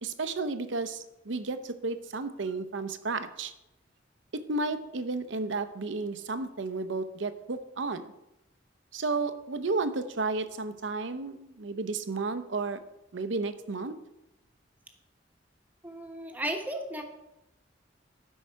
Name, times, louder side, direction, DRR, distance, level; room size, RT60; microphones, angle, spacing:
voice 1, 0.0-3.5 4.3-8.0 8.9-12.8 13.1-13.9, right 3 dB, 80° right, 11 dB, 0.7 m, -32 dB
voice 2, 15.8-17.1, right 1 dB, 10° right, 3 dB, 1.1 m, -35 dB
12.0 x 5.5 x 4.6 m, 0.91 s
head